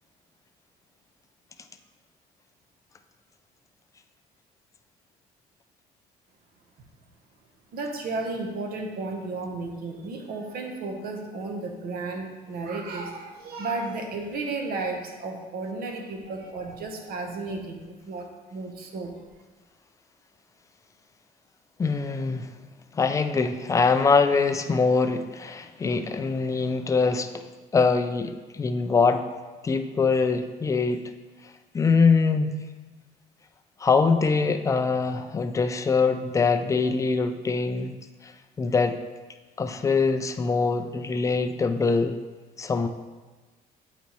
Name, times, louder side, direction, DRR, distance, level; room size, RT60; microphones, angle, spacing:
voice 1, 7.7-17.8 18.1-19.1, right 3 dB, 65° right, 3 dB, 0.9 m, -33 dB
voice 2, 21.8-22.5 22.9-27.4 27.7-29.2 29.6-31.1 31.7-32.5 33.8-38.0 38.2-38.3 38.6-39.0 39.6-42.2 42.6-42.9, left 4 dB, 20° left, 7 dB, 0.4 m, -23 dB
8.0 x 4.1 x 3.0 m, 1.3 s
cardioid pair, 110°, 17 cm